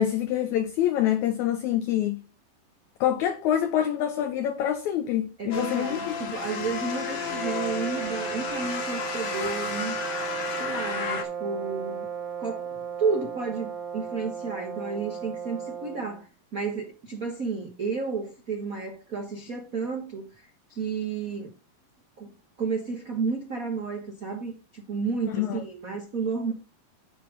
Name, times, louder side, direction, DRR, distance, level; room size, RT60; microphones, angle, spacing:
voice 1, 0.0-2.2 3.0-6.1 25.4-25.6, left 11 dB, 75° left, 1.8 m, -26 dB
voice 2, 5.4-9.9 10.6-12.1 12.4-21.5 22.2-22.3 22.6-26.5, right 5 dB, 70° right, 0.8 m, -32 dB
sound 1, 5.5-11.2, left 5 dB, 55° left, 2.7 m, -32 dB
sound 2, 7.2-16.2, right 7 dB, 85° right, 3.4 m, -35 dB
11.0 x 4.7 x 5.4 m
omnidirectional pair, 3.9 m